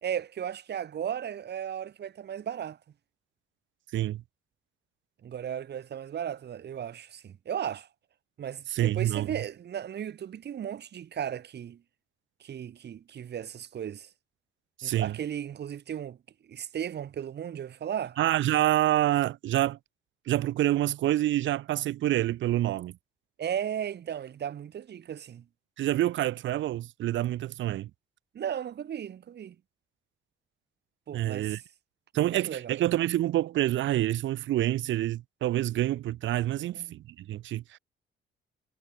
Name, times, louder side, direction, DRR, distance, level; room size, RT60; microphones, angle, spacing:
voice 1, 0.0-2.8 5.2-7.9 8.4-11.8 12.4-14.1 14.8-16.2 16.4-18.2 23.4-25.4 28.3-29.6 31.1-31.6 32.1-32.8 36.7-37.0, right 9 dB, 60° right, 2.3 m, -35 dB
voice 2, 8.7-9.3 14.8-15.2 18.2-19.8 20.3-23.0 25.8-27.9 31.1-31.6 32.1-37.8, right 14 dB, 75° right, 0.8 m, -27 dB
cardioid pair, 90°, 20 cm